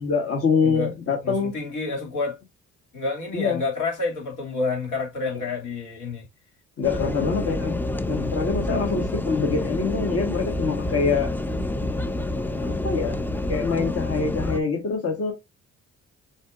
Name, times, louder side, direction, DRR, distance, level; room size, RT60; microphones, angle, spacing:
voice 1, 0.0-1.5 3.3-3.6 6.8-7.8 8.1-11.4 12.5-15.3, left 5 dB, 50° left, 1.3 m, -25 dB
voice 2, 1.2-2.4 2.9-6.2 7.1-7.5 8.1-8.3, left 3 dB, 80° left, 2.4 m, -29 dB
sound 1, 6.8-14.6, left 1 dB, 5° left, 0.4 m, -28 dB
7.1 x 2.8 x 2.4 m
cardioid pair, 90°, 30 cm